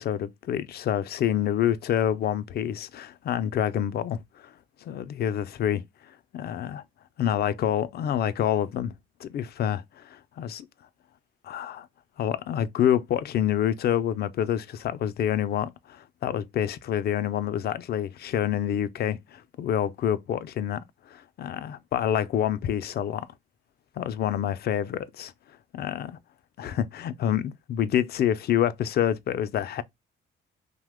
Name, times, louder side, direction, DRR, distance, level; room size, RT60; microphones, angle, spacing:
voice 1, 0.0-4.5 4.8-5.8 6.3-6.8 7.2-8.9 9.2-10.6 11.4-11.9 12.2-20.8 21.1-23.3 24.0-25.3 25.7-26.2 26.6-29.8, left 10 dB, 55° left, 0.4 m, -27 dB
2.8 x 2.1 x 3.4 m
cardioid pair, 90°, 20 cm